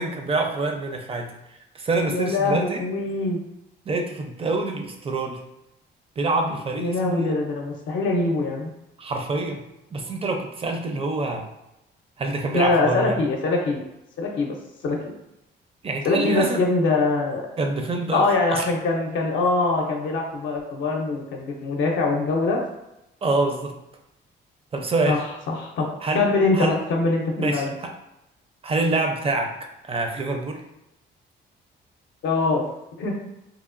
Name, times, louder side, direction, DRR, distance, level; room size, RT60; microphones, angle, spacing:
voice 1, 0.0-1.3 1.7-2.8 3.9-5.4 6.2-7.3 9.0-9.6 9.9-11.4 12.2-13.2 15.8-16.6 17.6-18.6 23.2-23.7 24.7-25.2 26.0-26.3 26.5-26.7 27.4-27.9 28.6-29.5 29.9-30.6, right 2 dB, 30° right, 3 dB, 0.5 m, -26 dB
voice 2, 2.1-3.4 6.8-8.7 12.5-13.8 14.2-14.6 14.8-15.1 16.0-17.5 18.1-22.6 25.0-25.9 26.1-27.7 32.2-32.6 33.0-33.1, left 3 dB, 70° left, 0 dB, 0.5 m, -23 dB
2.9 x 2.1 x 2.4 m, 0.90 s
cardioid pair, 90°, 20 cm